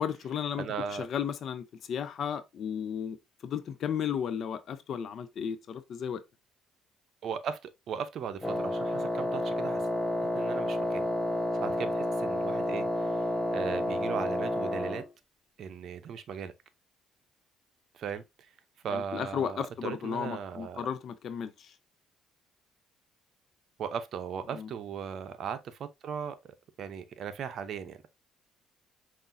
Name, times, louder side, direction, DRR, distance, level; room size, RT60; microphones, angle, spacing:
voice 1, 0.0-3.2 3.4-6.2 18.9-21.7 24.5-24.7, left 8 dB, 60° left, 0.5 m, -34 dB
voice 2, 0.6-1.1 7.2-9.8 10.3-11.1 11.6-13.2 13.5-15.0 15.6-16.5 17.9-18.2 18.8-20.9 23.8-26.4 26.8-28.0, right 7 dB, 60° right, 0.6 m, -37 dB
Wind instrument woodwind instrument, 8.4-15.1, left 1 dB, 10° left, 0.8 m, -30 dB
5.5 x 2.5 x 2.6 m
supercardioid pair, 80°, 0 cm